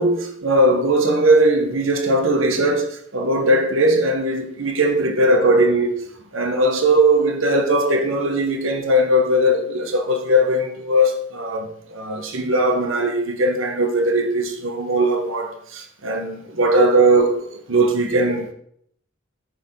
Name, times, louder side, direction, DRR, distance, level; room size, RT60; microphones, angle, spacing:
voice 1, 0.0-6.0 6.3-18.5, right 1 dB, 80° right, 1.5 m, -19 dB
14.0 x 6.7 x 4.0 m
head